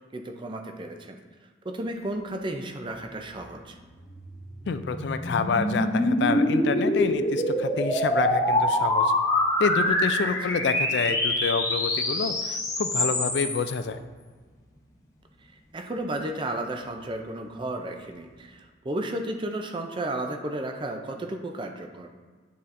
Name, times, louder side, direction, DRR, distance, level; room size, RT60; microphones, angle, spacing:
voice 1, 0.1-1.2 1.6-3.8 10.2-10.6 15.7-22.1, right 1 dB, 25° right, 4 dB, 0.4 m, -33 dB
sound 1, 4.0-13.7, left 1 dB, 15° left, 0.7 m, -25 dB
voice 2, 4.7-9.1 9.6-14.0, left 5 dB, 60° left, 10 dB, 0.3 m, -28 dB
9.1 x 4.1 x 2.5 m, 1.4 s
head